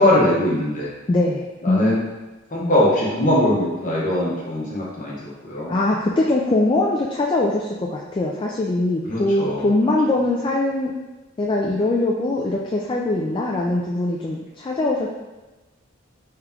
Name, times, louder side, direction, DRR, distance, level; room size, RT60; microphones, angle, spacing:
voice 1, 0.0-0.9 1.6-2.0 2.5-5.7 9.1-9.7, left 1 dB, 40° left, -5 dB, 1.1 m, -21 dB
voice 2, 1.1-1.8 2.6-2.8 5.7-10.9 11.4-15.1, left 2 dB, 25° left, -2 dB, 0.3 m, -22 dB
3.4 x 3.0 x 3.6 m, 1.1 s
head